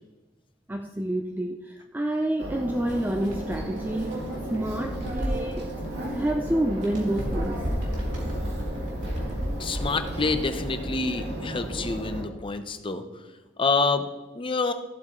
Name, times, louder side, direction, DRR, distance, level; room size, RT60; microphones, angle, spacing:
voice 1, 0.7-4.2 4.5-5.8 6.1-7.7, right 1 dB, 10° right, 4 dB, 0.4 m, -28 dB
sound 1, 2.4-12.2, equal, 65° right, 2.4 m, -34 dB
Bird, 2.8-6.4 6.7-10.6, equal, 85° right, 2.9 m, -34 dB
voice 2, 9.6-13.0 13.6-14.1 14.3-14.7, left 3 dB, 30° left, 8 dB, 0.8 m, -27 dB
14.5 x 7.9 x 3.1 m, 1.1 s
head